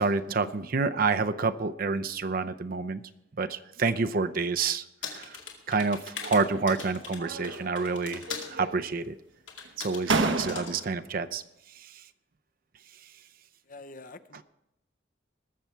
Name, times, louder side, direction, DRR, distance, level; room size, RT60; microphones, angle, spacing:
voice 1, 0.0-3.0 3.4-5.4 5.7-9.1 9.8-11.4 11.8-12.0, right 4 dB, 50° right, 10 dB, 0.6 m, -28 dB
sound 1, 5.0-8.5 9.5-10.0 10.4-10.7, left 6 dB, 90° left, 2.3 m, -40 dB
sound 2, 6.2-6.8 7.2-7.9 8.2-9.0 9.6-9.7 10.1-11.0, right 3 dB, 85° right, 1.1 m, -31 dB
voice 2, 13.7-14.4, left 2 dB, 45° left, 11 dB, 0.6 m, -46 dB
20.0 x 7.0 x 4.5 m, 0.84 s
head